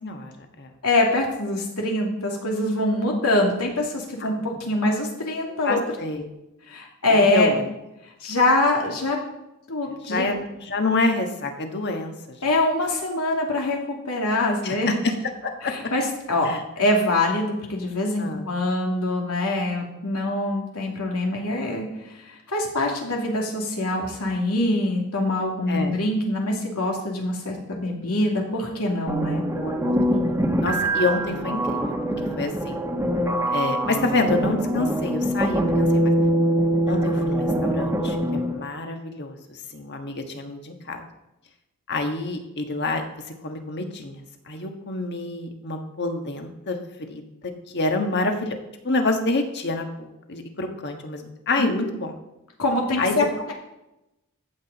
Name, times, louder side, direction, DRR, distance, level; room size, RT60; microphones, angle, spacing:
voice 1, 0.0-0.7 4.2-4.3 5.6-6.3 7.1-7.7 10.0-12.4 14.6-14.9 15.4-15.7 16.4-16.6 18.2-18.5 25.7-26.0 29.5-31.9 32.4-32.8 33.5-36.1 36.9-41.0 41.9-43.0 43.4-46.8 47.1-48.6 48.8-52.1 53.0-53.3, left 3 dB, 50° left, 4 dB, 1.4 m, -28 dB
voice 2, 0.8-5.8 6.7-7.6 8.2-9.2 9.7-10.3 12.4-14.9 15.6-29.4 51.6-51.9 52.6-53.5, left 1 dB, 85° left, 0 dB, 2.6 m, -24 dB
sound 1, 29.1-38.6, right 1 dB, 10° right, 1.1 m, -23 dB
14.5 x 7.9 x 4.1 m, 0.91 s
head